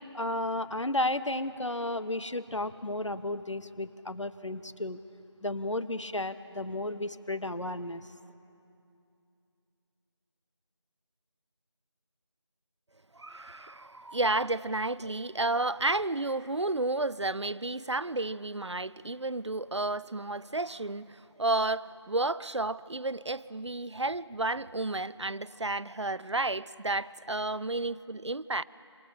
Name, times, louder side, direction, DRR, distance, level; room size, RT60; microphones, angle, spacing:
voice 1, 0.1-5.0 5.4-8.0, left 1 dB, 80° left, 1.1 m, -33 dB
voice 2, 13.2-28.6, right 2 dB, 70° right, 0.5 m, -31 dB
27.5 x 27.0 x 5.8 m
figure-of-eight pair, 175°, 15 cm